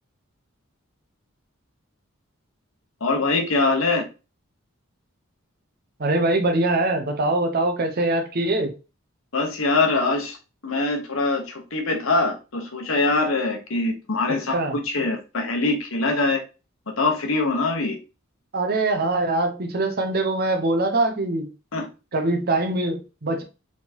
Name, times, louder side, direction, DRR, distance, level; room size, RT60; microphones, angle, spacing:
voice 1, 3.0-4.0 9.3-10.4 10.6-14.6 14.8-16.4 17.0-18.0 21.7-21.9, left 3 dB, 70° left, 1.1 m, -23 dB
voice 2, 6.0-8.7 14.5-14.8 18.5-21.5 22.1-23.4, right 2 dB, 45° right, 0.8 m, -23 dB
4.4 x 3.7 x 2.8 m
head